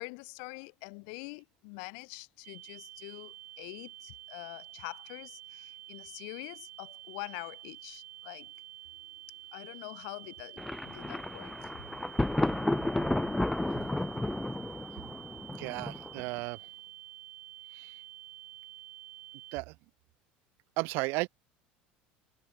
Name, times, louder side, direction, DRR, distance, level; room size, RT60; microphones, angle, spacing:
voice 1, 0.0-8.5 9.5-11.8, left 40 dB or more, 75° left, 0.4 m, -45 dB
sound 1, 2.4-19.6, right 14 dB, 45° right, 2.7 m, -49 dB
Thunder, 10.6-16.4, left 1 dB, 5° left, 0.3 m, -32 dB
voice 2, 15.5-16.6 17.7-17.9 19.5-19.7 20.8-21.3, right 26 dB, 65° right, 0.8 m, -34 dB
cardioid pair, 165°, 4 cm